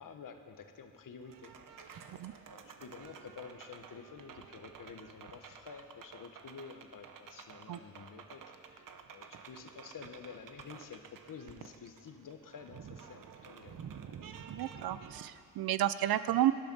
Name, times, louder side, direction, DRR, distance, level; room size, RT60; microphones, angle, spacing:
voice 1, 0.0-1.5 1.8-1.9 2.5-11.0 11.3-13.9, left 6 dB, 65° left, 6 dB, 1.3 m, -50 dB
sound 1, 1.2-15.3, right 7 dB, 60° right, 1.0 m, -51 dB
voice 2, 14.5-16.5, right 12 dB, 80° right, 14 dB, 0.6 m, -31 dB
19.0 x 11.5 x 5.5 m, 2.4 s
cardioid pair, 90°, 36 cm